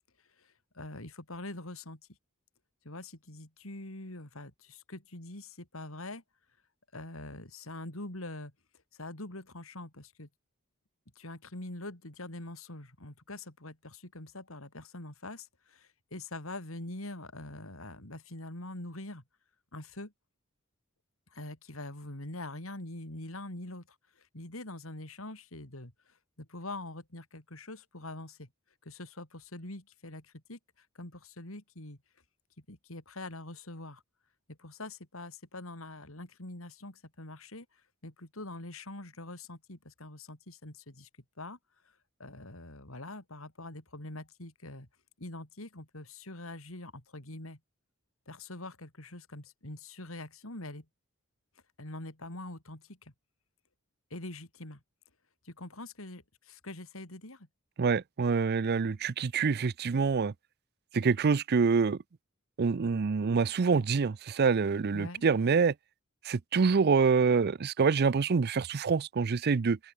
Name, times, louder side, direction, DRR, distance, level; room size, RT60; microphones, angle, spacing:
voice 1, 0.4-2.0 2.8-6.2 6.9-8.5 8.9-10.3 11.2-19.2 19.7-20.1 21.3-23.9 24.2-28.5 28.8-32.0 32.7-34.0 34.5-37.7 38.0-41.1 41.4-41.6 42.2-44.9 45.2-47.6 48.3-50.9 51.8-53.1 54.1-54.8 55.4-57.5 64.9-65.2, left 2 dB, 70° left, 4.3 m, -44 dB
voice 2, 57.8-60.3 60.9-62.0 62.6-65.7 66.3-69.8, right 5 dB, 50° right, 0.5 m, -26 dB
open air
head